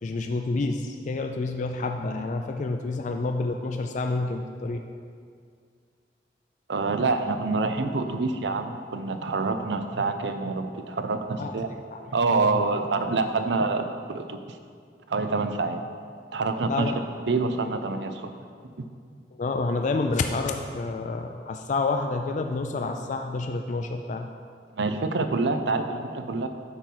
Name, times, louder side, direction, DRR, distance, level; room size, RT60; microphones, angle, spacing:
voice 1, 0.0-4.8 11.4-11.5 11.9-12.0 12.3-12.6 16.7-16.9 19.4-24.3, left 3 dB, 45° left, 5 dB, 0.3 m, -28 dB
voice 2, 6.7-11.7 12.1-14.6 15.1-15.8 16.3-16.9 17.3-18.3 18.8-18.9 24.7-26.5, right 3 dB, 80° right, 8 dB, 0.6 m, -26 dB
8.6 x 5.3 x 4.6 m, 2.2 s
head